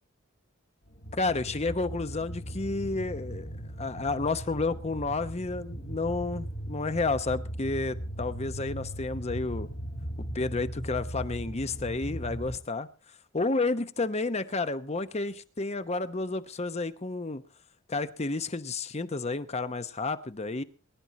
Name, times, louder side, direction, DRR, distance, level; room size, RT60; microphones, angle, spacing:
sound 1, 0.9-12.6, equal, 55° left, 1.7 m, -38 dB
voice 1, 1.1-3.5 3.8-9.7 10.3-12.9 13.3-17.4 17.9-20.6, left 3 dB, 30° left, 12 dB, 0.9 m, -31 dB
21.0 x 11.0 x 4.1 m, 0.36 s
head